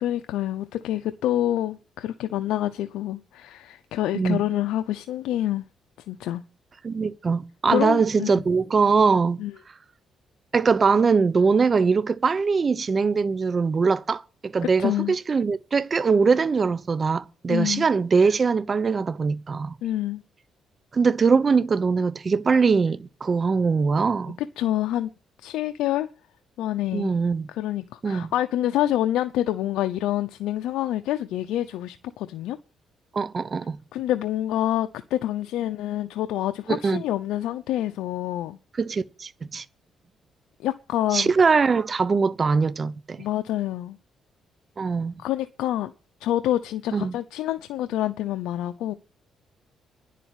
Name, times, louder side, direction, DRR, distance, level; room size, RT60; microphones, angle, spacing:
voice 1, 0.0-5.6 6.1-6.4 7.7-8.4 9.4-9.5 14.8-15.1 17.5-17.9 19.8-20.2 24.6-25.1 25.4-26.1 26.6-27.1 27.6-32.6 33.9-38.6 40.6-41.3 43.2-44.0 45.2-45.9 46.2-48.9, left 13 dB, 90° left, 0.7 m, -27 dB
voice 2, 6.8-9.4 10.5-19.7 20.9-24.4 26.9-27.5 28.0-28.3 33.1-33.8 36.7-37.0 38.8-39.6 41.1-43.2 44.8-45.1 46.9-47.1, right 5 dB, 35° right, 0.9 m, -22 dB
10.5 x 7.6 x 9.1 m
cardioid pair, 90°, 0 cm